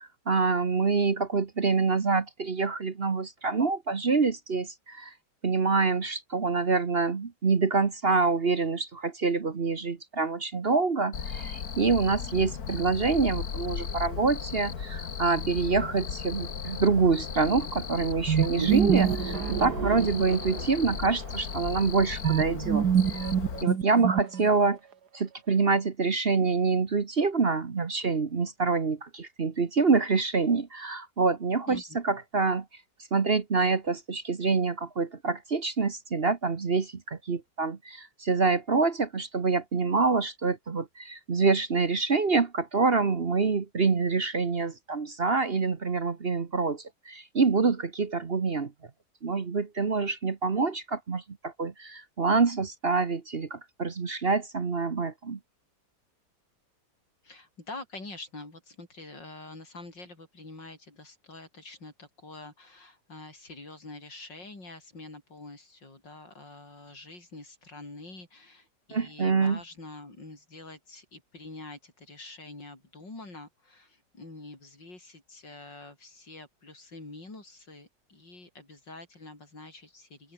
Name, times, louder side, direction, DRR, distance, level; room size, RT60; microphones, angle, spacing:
voice 1, 0.0-5.1 5.4-23.2 23.6-24.8 25.1-32.6 33.1-48.7 49.2-55.4 68.9-69.6, right 4 dB, 35° right, 1.3 m, -26 dB
Cricket, 11.1-23.6, left 6 dB, 55° left, 2.1 m, -36 dB
sound 1, 18.3-20.8 22.2-24.7, right 8 dB, 65° right, 2.0 m, -26 dB
voice 2, 31.7-32.0 57.2-80.3, left 2 dB, 90° left, 7.1 m, -46 dB
open air
omnidirectional pair, 1.9 m